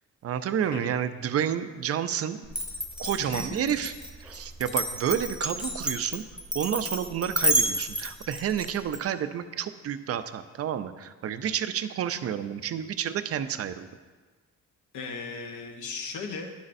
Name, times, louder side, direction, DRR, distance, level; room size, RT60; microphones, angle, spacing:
voice 1, 0.2-2.4 3.0-3.9 4.2-6.2 6.5-13.9, right 9 dB, 50° right, 11 dB, 0.5 m, -30 dB
Glass, 2.5-9.0, right 1 dB, ahead, 0.9 m, -30 dB
voice 2, 3.2-3.7 14.9-16.5, left 4 dB, 75° left, 4 dB, 1.1 m, -37 dB
9.9 x 8.2 x 2.6 m, 1.4 s
cardioid pair, 90°, 30 cm